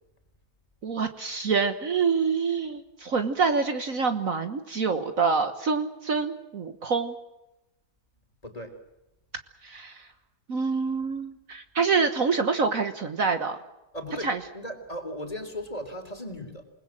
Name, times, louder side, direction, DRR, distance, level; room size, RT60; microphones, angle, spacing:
voice 1, 0.8-7.1 9.6-10.1 10.5-13.6 14.2-14.4, right 5 dB, 55° right, 8 dB, 1.6 m, -26 dB
voice 2, 8.4-8.7 13.9-14.3 14.5-16.6, equal, 20° left, 6 dB, 3.6 m, -36 dB
28.0 x 20.5 x 7.5 m, 0.95 s
omnidirectional pair, 1.8 m